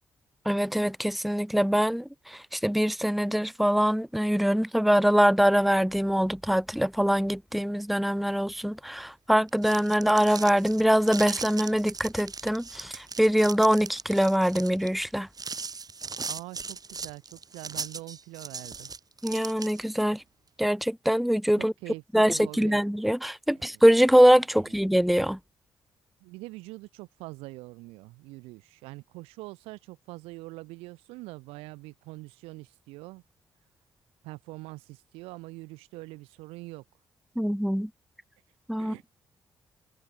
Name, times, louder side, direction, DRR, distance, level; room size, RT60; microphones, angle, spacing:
voice 1, 0.4-15.3 19.2-20.2 20.6-21.7 22.1-25.4 37.4-37.9 38.7-38.9, equal, ahead, 1.3 m, -23 dB
sound 1, 9.4-20.0, right 5 dB, 40° right, 2.5 m, -39 dB
voice 2, 16.3-18.9 21.6-22.8 26.2-33.2 34.2-36.8 38.8-39.0, right 22 dB, 85° right, 6.3 m, -43 dB
hypercardioid pair, 45°, 10 cm